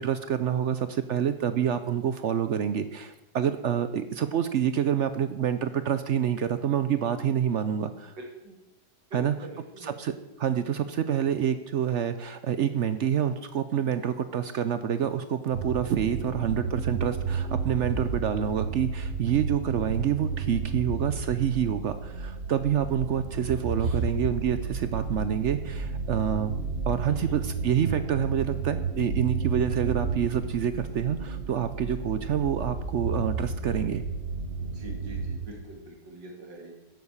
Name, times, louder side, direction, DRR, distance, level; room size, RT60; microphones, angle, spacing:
voice 1, 0.0-8.1 9.1-9.3 9.8-10.1 10.4-26.5 26.9-34.0, right 9 dB, 65° right, 11 dB, 0.7 m, -27 dB
voice 2, 8.2-8.6 9.1-10.0 23.8-24.0 27.1-27.4 34.6-36.7, right 2 dB, 90° right, 1 dB, 3.1 m, -44 dB
sound 1, 15.5-35.4, right 4 dB, 45° right, 1.2 m, -32 dB
10.5 x 8.4 x 7.3 m, 0.94 s
omnidirectional pair, 1.9 m